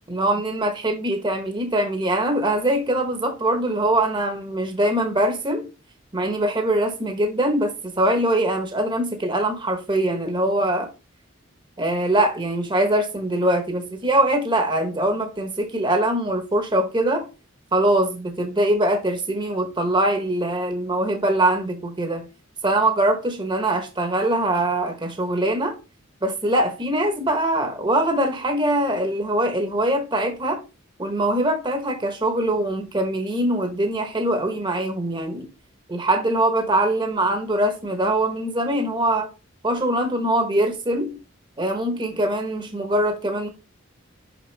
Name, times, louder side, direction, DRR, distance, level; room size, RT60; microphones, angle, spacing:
voice 1, 0.1-5.7 6.1-10.9 11.8-17.3 17.7-22.3 22.6-25.8 26.2-30.6 31.0-35.5 35.9-39.3 39.6-41.2 41.6-43.5, right 1 dB, 25° right, 1.0 m, -22 dB
6.0 x 5.9 x 3.3 m
head